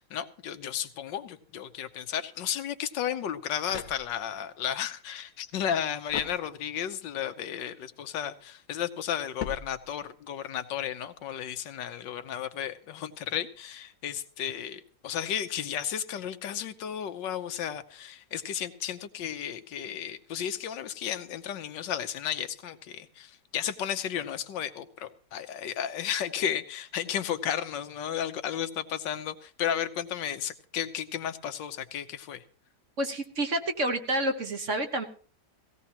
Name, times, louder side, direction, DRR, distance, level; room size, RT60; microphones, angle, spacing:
voice 1, 0.0-32.4, left 9 dB, 90° left, 10 dB, 1.6 m, -33 dB
sound 1, 3.6-4.5 6.1-7.0 9.4-10.3, left 7 dB, 55° left, 1.3 m, -41 dB
voice 2, 33.0-35.0, right 1 dB, 45° right, 6 dB, 1.5 m, -29 dB
18.0 x 16.5 x 2.9 m, 0.40 s
omnidirectional pair, 1.9 m